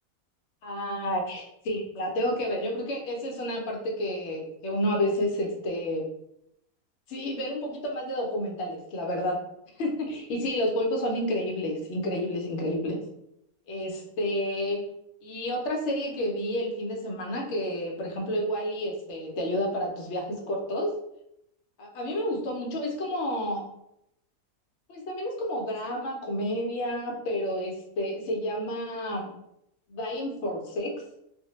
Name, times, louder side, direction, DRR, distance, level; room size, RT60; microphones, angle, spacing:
voice 1, 0.6-6.0 7.1-9.4 9.8-13.0 13.7-14.8 15.2-20.9 21.8-23.7 24.9-29.3 29.9-30.9, equal, 60° left, 1 dB, 0.8 m, -30 dB
2.5 x 2.1 x 3.0 m, 0.79 s
omnidirectional pair, 1.5 m